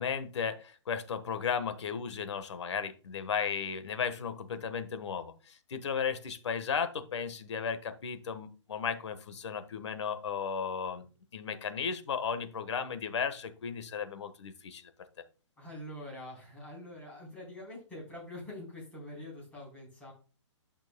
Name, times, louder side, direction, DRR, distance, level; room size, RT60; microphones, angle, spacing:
voice 1, 0.0-11.0 11.3-14.8, left 6 dB, 65° left, 10 dB, 1.3 m, -35 dB
voice 2, 15.6-20.1, left 1 dB, 10° left, -4 dB, 3.9 m, -45 dB
11.0 x 6.0 x 2.2 m, 0.35 s
hypercardioid pair, 165°, 16 cm